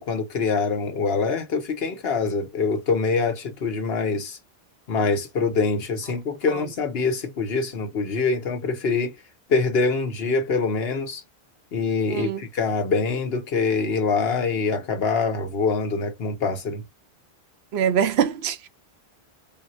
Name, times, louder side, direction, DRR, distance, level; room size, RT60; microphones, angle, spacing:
voice 1, 0.0-4.4 4.9-9.1 9.5-11.2 11.7-16.8, left 4 dB, 70° left, 1.1 m, -24 dB
voice 2, 12.1-12.4 17.7-18.7, right 8 dB, 80° right, 0.9 m, -23 dB
3.7 x 2.0 x 2.6 m
omnidirectional pair, 1.1 m